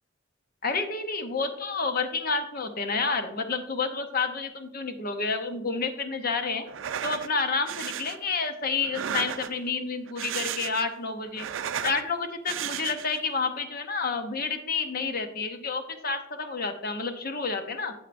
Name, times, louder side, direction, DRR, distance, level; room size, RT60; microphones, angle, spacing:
voice 1, 0.6-6.7 7.0-11.5 11.8-17.9, left 4 dB, 50° left, 7 dB, 0.8 m, -29 dB
sound 1, 6.7-7.3 7.7-8.2 8.8-9.7 10.1-10.9 11.2-12.0 12.5-13.2, right 9 dB, 70° right, 0.4 m, -34 dB
8.6 x 8.1 x 2.6 m, 0.91 s
head